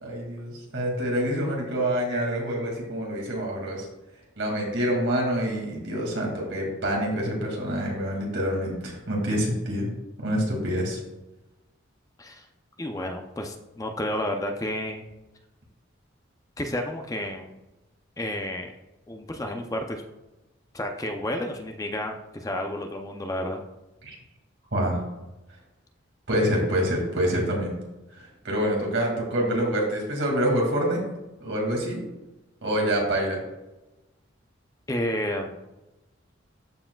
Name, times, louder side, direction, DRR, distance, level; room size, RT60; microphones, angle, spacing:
voice 1, 0.0-3.9 4.4-9.9 10.2-11.0 24.0-24.1 24.7-25.0 26.3-27.7 28.2-31.0 31.4-32.0 32.6-33.4, equal, 75° right, -1 dB, 2.2 m, -26 dB
voice 2, 12.8-15.1 16.6-17.6 18.2-18.7 19.1-20.0 20.7-23.6 34.9-35.6, left 1 dB, 15° left, 4 dB, 0.5 m, -31 dB
13.0 x 4.7 x 2.3 m, 1.0 s
head